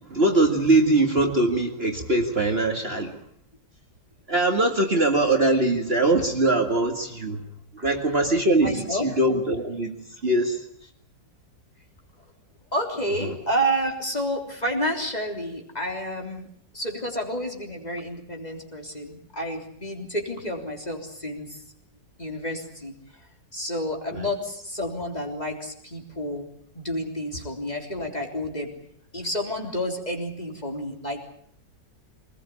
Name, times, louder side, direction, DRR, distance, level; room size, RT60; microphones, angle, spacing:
voice 1, 0.1-3.2 4.3-7.4 7.8-10.0 10.2-10.6 13.2-13.3 24.1-24.3, right 2 dB, 35° right, 3 dB, 2.2 m, -22 dB
voice 2, 8.6-9.1 12.7-16.5 16.7-21.6 22.2-22.9 23.5-26.5 26.8-28.7 29.1-31.2, equal, 20° left, 2 dB, 3.7 m, -30 dB
24.0 x 20.0 x 8.5 m, 0.67 s
omnidirectional pair, 1.9 m